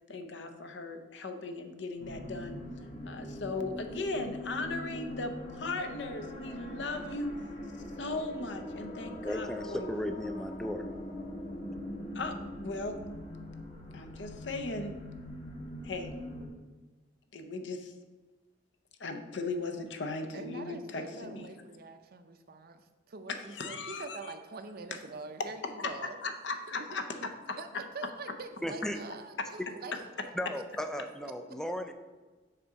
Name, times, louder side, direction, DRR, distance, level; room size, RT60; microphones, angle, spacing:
voice 1, 0.1-2.6 3.1-7.3 8.0-10.1 12.1-13.0 13.9-14.9 15.8-16.1 17.3-17.9 19.0-21.5 23.5-24.3 24.9-25.0 25.8-25.9 26.2-27.6, left 3 dB, 75° left, 6 dB, 0.7 m, -37 dB
sound 1, 2.0-16.5, left 1 dB, 35° left, 0.9 m, -42 dB
voice 2, 9.2-10.9 28.6-29.0 30.4-31.9, equal, 5° left, 7 dB, 0.4 m, -35 dB
voice 3, 20.3-22.8 23.1-26.2 26.7-26.9 27.6-30.1 30.5-30.6, right 3 dB, 55° right, 8 dB, 0.6 m, -44 dB
6.7 x 3.7 x 5.7 m, 1.3 s
head